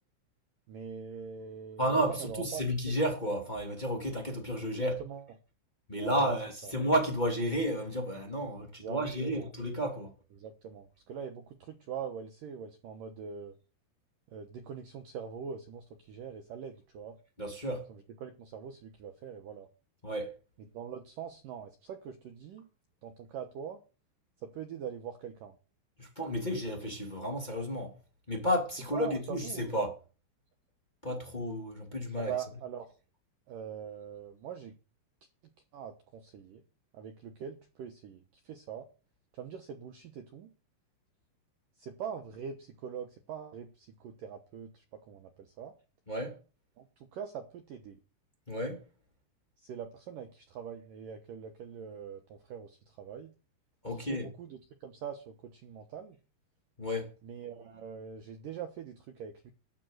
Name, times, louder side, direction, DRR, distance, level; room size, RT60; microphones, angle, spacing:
voice 1, 0.7-2.6 4.8-5.3 6.0-6.3 6.6-6.7 8.8-9.5 10.3-13.6 14.3-17.2 17.9-19.7 20.7-22.7 23.0-23.8 24.4-25.6 28.9-29.6 32.2-33.0 33.5-34.8 35.7-36.6 36.9-38.9 39.3-40.5 41.8-45.7 46.8-48.0 49.6-53.3 53.9-56.2 57.2-59.5, right 7 dB, 75° right, 2.0 m, -43 dB
voice 2, 1.8-5.0 5.9-10.1 17.4-17.9 20.0-20.3 26.0-27.9 28.3-29.9 31.0-32.3 46.1-46.4 48.5-48.8 53.8-54.3 56.8-57.1, equal, 15° left, 1.6 m, -32 dB
12.0 x 6.6 x 8.0 m
omnidirectional pair, 5.6 m